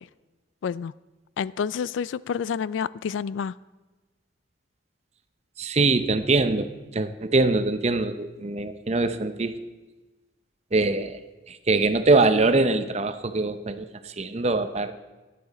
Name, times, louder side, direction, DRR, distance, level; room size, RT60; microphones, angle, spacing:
voice 1, 0.6-0.9 1.4-3.5, left 7 dB, 80° left, 20 dB, 0.3 m, -29 dB
voice 2, 5.6-6.7 6.9-9.6 10.7-11.2 11.5-14.9, right 3 dB, 35° right, 10 dB, 0.7 m, -23 dB
13.0 x 10.5 x 4.1 m, 1.2 s
head